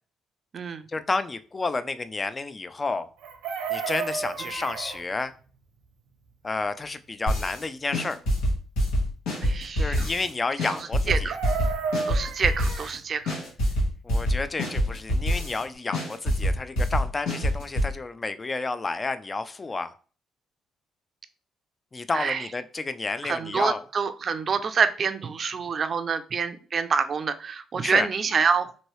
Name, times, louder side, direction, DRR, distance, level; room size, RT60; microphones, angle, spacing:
voice 1, 0.9-3.1 3.7-5.3 6.4-8.2 9.8-11.3 14.0-19.9 21.9-23.8 27.8-28.1, left 3 dB, 25° left, 12 dB, 0.3 m, -30 dB
Chicken rooster, 3.2-5.0 11.1-12.9 15.1-15.2 15.5-15.7, right 6 dB, 90° right, 0.6 m, -32 dB
sound 1, 7.3-7.6 7.9-10.3 10.6-13.0 13.3-15.6 15.9-17.9, equal, 85° left, 1.2 m, -25 dB
voice 2, 9.4-10.1 11.1-11.4 12.1-13.4 22.1-22.5 23.2-28.7, right 6 dB, 45° right, 11 dB, 0.4 m, -26 dB
2.9 x 2.6 x 3.1 m, 0.40 s
cardioid pair, 85°, 0 cm